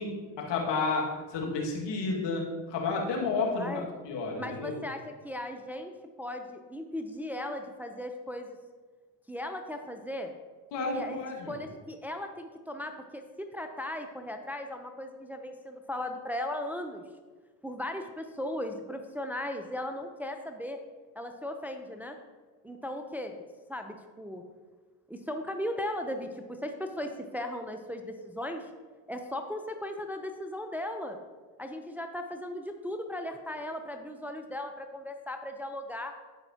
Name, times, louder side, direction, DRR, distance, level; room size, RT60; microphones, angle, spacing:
voice 1, 0.0-4.8 10.7-11.6, left 3 dB, 65° left, -1 dB, 2.1 m, -31 dB
voice 2, 3.5-3.8 4.4-5.9 6.2-8.6 9.3-10.3 10.9-11.2 11.5-17.0 17.6-20.8 21.2-22.2 22.6-23.4 23.7-24.4 25.1-28.7 29.1-31.2 31.6-36.1, left 1 dB, 5° right, 5 dB, 0.7 m, -37 dB
14.5 x 5.4 x 2.9 m, 1.4 s
hypercardioid pair, 60°, 46 cm